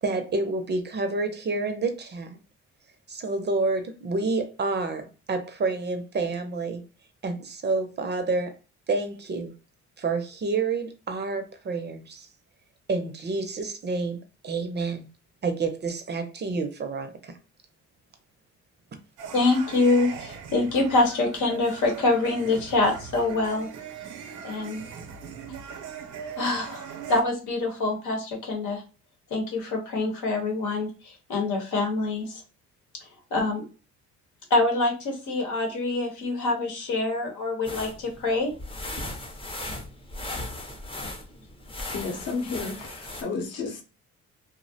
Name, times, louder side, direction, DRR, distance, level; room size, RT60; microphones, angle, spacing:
voice 1, 0.0-2.4 3.1-6.8 7.2-8.5 8.9-9.5 10.0-12.3 12.9-15.1 15.4-17.3, right 3 dB, 35° right, 0.5 m, -29 dB
sound 1, 19.2-27.2, right 7 dB, 80° right, 0.6 m, -40 dB
voice 2, 19.3-23.7 24.4-24.9 26.4-28.8 29.3-32.4 33.3-33.6 34.5-38.5, left 2 dB, 85° left, 0.9 m, -25 dB
sound 2, 37.7-43.2, left 1 dB, 20° left, 0.5 m, -37 dB
voice 3, 41.8-43.8, left 4 dB, 55° left, 0.7 m, -32 dB
2.4 x 2.0 x 2.6 m
cardioid pair, 90°, 30 cm